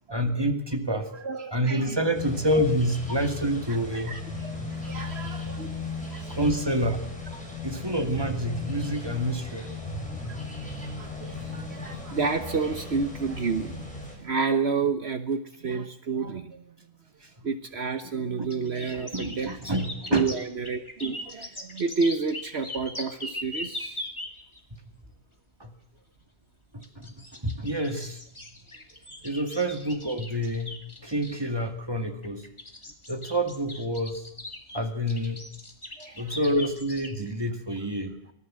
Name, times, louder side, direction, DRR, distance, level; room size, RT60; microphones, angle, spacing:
voice 1, 0.1-1.1 1.5-4.2 6.4-7.0 7.6-9.7 10.0-10.1 18.4-18.5 18.9-20.3 25.6-25.7 26.7-27.1 27.4-28.2 29.2-32.4 33.1-34.2 34.7-35.4 36.2-38.2, equal, 20° right, 7 dB, 2.3 m, -28 dB
voice 2, 0.9-2.1 3.7-5.8 6.1-6.4 10.3-16.6 17.4-19.8 20.1-24.0 36.0-36.4, right 4 dB, 60° right, 10 dB, 1.4 m, -31 dB
sound 1, 2.1-14.2, left 3 dB, 5° left, 7.3 m, -36 dB
sound 2, 18.5-24.6 26.8-31.4 32.2-37.1, left 1 dB, 25° left, 2.4 m, -40 dB
25.0 x 18.5 x 7.7 m, 0.74 s
omnidirectional pair, 1.3 m